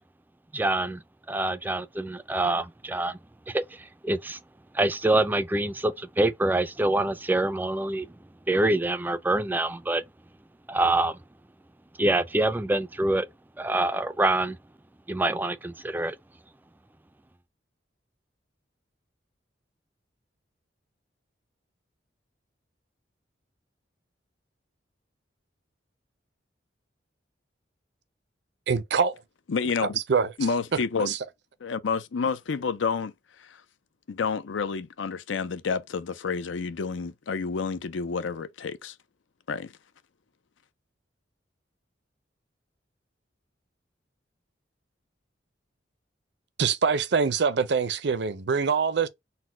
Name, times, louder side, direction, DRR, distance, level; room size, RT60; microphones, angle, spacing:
voice 1, 0.5-1.0 1.3-3.1 3.5-3.6 4.0-4.4 4.7-8.1 8.5-10.0 10.7-11.2 12.0-13.3 13.6-14.6 15.1-16.1, right 2 dB, 10° right, 0.3 m, -25 dB
voice 2, 28.7-29.2 30.1-30.3 31.0-31.2 46.6-49.1, right 5 dB, 65° right, 0.5 m, -24 dB
voice 3, 29.5-30.0 30.4-31.1 31.6-33.6 34.1-39.0 39.5-39.7, left 5 dB, 85° left, 0.5 m, -29 dB
4.1 x 2.1 x 4.3 m
head